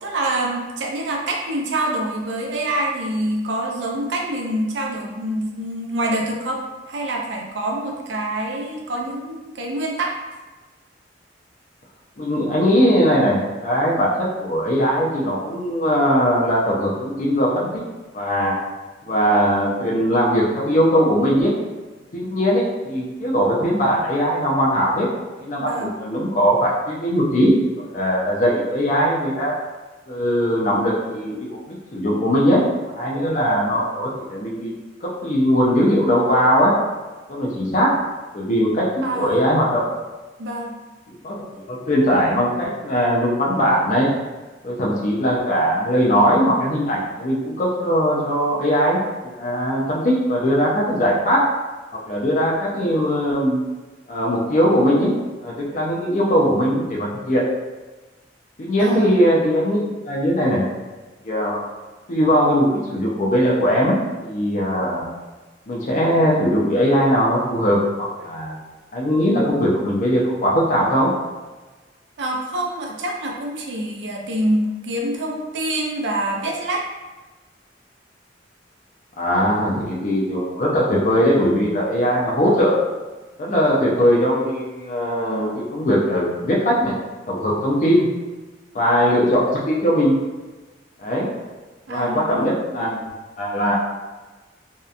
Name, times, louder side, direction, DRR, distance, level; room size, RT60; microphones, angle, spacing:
voice 1, 0.0-10.2 25.6-26.0 39.0-39.4 40.4-40.8 58.8-59.2 72.2-76.8 91.9-92.6, right 1 dB, 70° right, 0 dB, 0.5 m, -26 dB
voice 2, 12.2-14.1 14.4-17.8 18.1-18.5 19.0-21.5 22.1-25.1 25.4-27.6 27.9-29.5 30.1-32.6 33.0-34.7 35.2-36.7 37.3-37.9 38.3-39.8 41.2-44.1 44.6-49.0 49.4-51.4 52.1-53.6 54.1-55.1 55.4-57.4 58.6-60.6 61.2-61.7 62.1-65.1 65.7-68.6 68.9-71.1 79.2-82.7 83.4-86.9 87.3-88.1 88.7-90.2 91.0-91.3 91.9-93.1 93.4-93.7, equal, 40° left, -4 dB, 0.4 m, -20 dB
2.7 x 2.2 x 2.4 m, 1.2 s
head